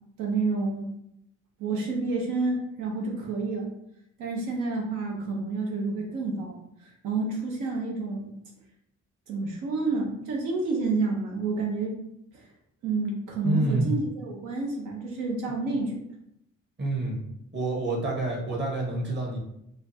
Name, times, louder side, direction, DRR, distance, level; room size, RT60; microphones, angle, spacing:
voice 1, 0.2-0.9 1.6-3.7 4.2-8.3 9.3-12.0 12.3-12.5 12.8-16.0, right 3 dB, 85° right, -1 dB, 0.8 m, -29 dB
voice 2, 13.4-13.9 16.8-17.2 17.5-19.4, right 2 dB, 35° right, -1 dB, 1.4 m, -27 dB
5.0 x 2.5 x 2.8 m, 0.79 s
cardioid pair, 90°, 30 cm